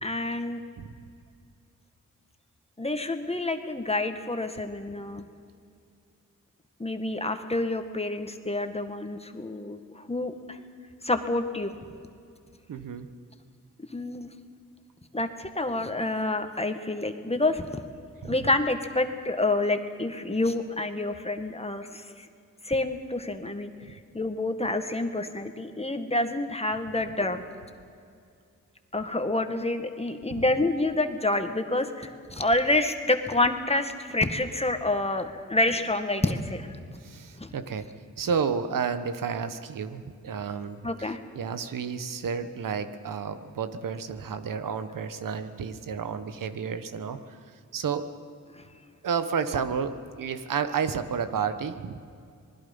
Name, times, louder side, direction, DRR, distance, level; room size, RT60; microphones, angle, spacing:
voice 1, 0.0-0.6 2.8-5.2 6.8-10.6 11.0-11.7 13.9-14.3 15.1-17.7 18.3-22.3 22.6-27.4 28.9-36.8 37.4-37.5 40.8-41.2 48.6-48.7, left 2 dB, 20° left, 7 dB, 1.8 m, -28 dB
voice 2, 12.7-13.1 18.2-18.5 29.2-29.3 30.3-30.6 37.0-37.9 38.2-47.4 47.7-48.1 49.0-52.0, right 6 dB, 85° right, 10 dB, 1.3 m, -31 dB
26.5 x 20.0 x 5.5 m, 2.3 s
cardioid pair, 65°, 32 cm